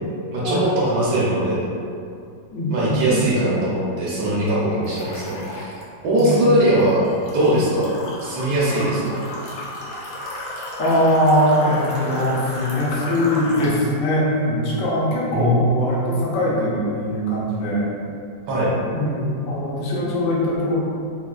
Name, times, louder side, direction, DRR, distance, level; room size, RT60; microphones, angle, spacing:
voice 1, 0.3-1.7 2.7-5.7 6.0-7.9 8.2-9.2 15.3-15.8 18.5-18.7, right 1 dB, 70° right, -6 dB, 1.1 m, -20 dB
voice 2, 2.5-3.1 6.2-6.7 10.8-17.9 18.9-20.8, equal, 65° left, -6 dB, 0.7 m, -21 dB
sound 1, 4.8-5.8 6.2-13.8, left 1 dB, 90° left, 1.4 m, -33 dB
4.0 x 2.2 x 2.3 m, 2.5 s
omnidirectional pair, 2.1 m